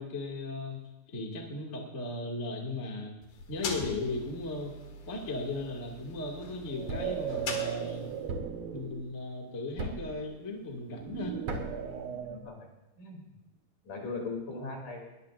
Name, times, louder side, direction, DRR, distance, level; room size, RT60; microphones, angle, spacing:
voice 1, 0.0-3.2 3.5-4.7 5.1-8.1 8.7-11.3, left 2 dB, 25° left, -1 dB, 1.8 m, -37 dB
sound 1, 3.2-8.3, left 4 dB, 85° left, 3.9 m, -42 dB
sound 2, 6.6-9.1 10.9-12.4, right 9 dB, 75° right, 2.9 m, -37 dB
Thump thud, 6.9-7.3 8.3-8.7 9.8-10.2 11.5-11.9, right 2 dB, 55° right, 2.4 m, -36 dB
voice 2, 12.1-12.7 13.0-13.2 13.8-15.1, left 3 dB, 55° left, 0 dB, 4.3 m, -39 dB
21.5 x 20.5 x 2.6 m, 1.0 s
omnidirectional pair, 4.4 m